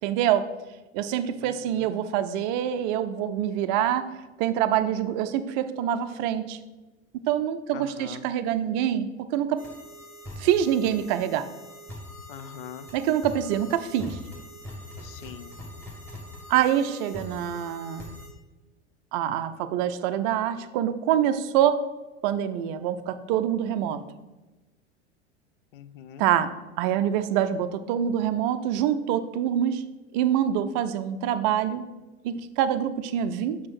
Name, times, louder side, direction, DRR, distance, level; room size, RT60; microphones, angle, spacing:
voice 1, 0.0-0.4 0.9-4.1 4.4-6.6 7.3-9.6 10.4-11.5 12.9-14.2 16.5-18.1 19.1-21.8 22.2-24.0 26.2-26.5 26.8-29.8 30.1-31.8 32.2-33.6, right 10 dB, 40° right, 11 dB, 0.5 m, -25 dB
voice 2, 1.4-1.9 7.7-8.3 12.3-12.9 15.0-15.6 25.7-26.3, left 10 dB, 50° left, 12 dB, 0.6 m, -43 dB
sound 1, 9.6-18.3, left 1 dB, 5° left, 2.5 m, -43 dB
6.1 x 6.1 x 6.0 m, 1.1 s
figure-of-eight pair, 80°, 34 cm